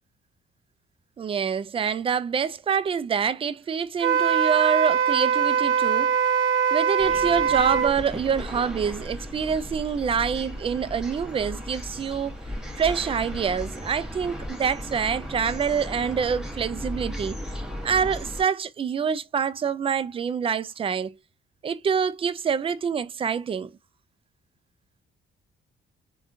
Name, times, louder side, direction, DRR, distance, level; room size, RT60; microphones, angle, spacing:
voice 1, 1.2-6.2 6.7-12.4 12.8-17.4 17.8-21.2 21.6-23.7, right 7 dB, 30° right, 0.4 m, -26 dB
Wind instrument woodwind instrument, 4.0-7.9, right 7 dB, 85° right, 0.5 m, -22 dB
sound 1, 7.0-18.4, equal, 5° right, 1.0 m, -36 dB
3.5 x 2.3 x 2.5 m
cardioid pair, 90°, 20 cm